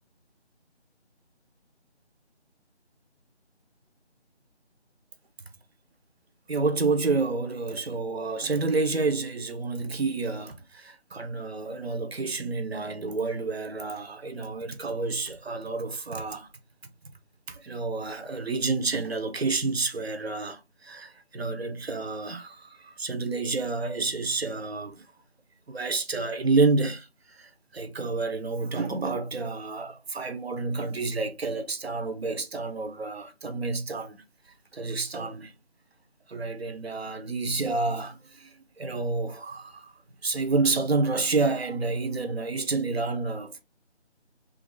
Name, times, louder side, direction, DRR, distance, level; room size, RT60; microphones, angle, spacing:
voice 1, 6.5-16.5 17.5-25.0 25.7-34.2 34.7-35.5 36.3-39.9 40.2-43.6, right 3 dB, 65° right, 0.8 m, -29 dB
3.2 x 2.5 x 3.0 m
figure-of-eight pair, 165°, 34 cm